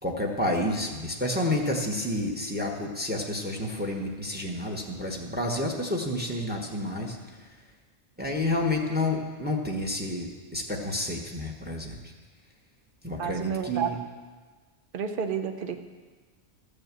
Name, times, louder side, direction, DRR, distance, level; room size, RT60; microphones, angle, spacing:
voice 1, 0.0-7.2 8.2-12.0 13.0-14.0, left 1 dB, 10° right, 1 dB, 1.2 m, -29 dB
voice 2, 13.2-13.9 14.9-15.8, right 7 dB, 50° right, 8 dB, 0.9 m, -30 dB
13.5 x 6.6 x 7.5 m, 1.4 s
omnidirectional pair, 1.2 m